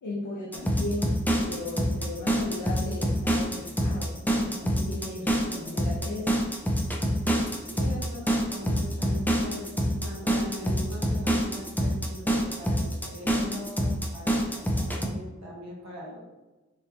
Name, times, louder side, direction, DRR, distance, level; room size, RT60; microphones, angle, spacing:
voice 1, 0.0-1.1 1.4-6.3, left 2 dB, 80° left, -4 dB, 0.7 m, -36 dB
sound 1, 0.5-15.1, equal, 5° left, 0.5 m, -26 dB
voice 2, 7.6-16.2, left 1 dB, 60° right, -5 dB, 1.2 m, -41 dB
3.8 x 2.6 x 2.9 m, 1.1 s
wide cardioid pair, 55°, 30 cm